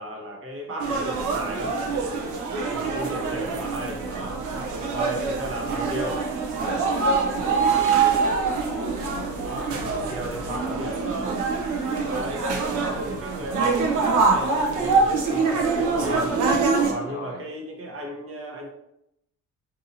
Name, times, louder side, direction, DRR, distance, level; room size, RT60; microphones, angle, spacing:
voice 1, 0.0-1.8 2.7-4.5 4.9-6.3 9.4-11.4 12.0-16.4 16.9-18.7, right 1 dB, 45° right, 1 dB, 1.0 m, -35 dB
sound 1, 0.8-16.9, right 4 dB, 80° right, 0.7 m, -24 dB
voice 2, 2.4-3.4 4.7-5.1 7.3-10.4 11.9-12.4 15.9-16.3 17.0-17.4, left 1 dB, 25° right, -4 dB, 1.2 m, -40 dB
3.9 x 2.7 x 2.6 m, 0.80 s
cardioid pair, 90°, 30 cm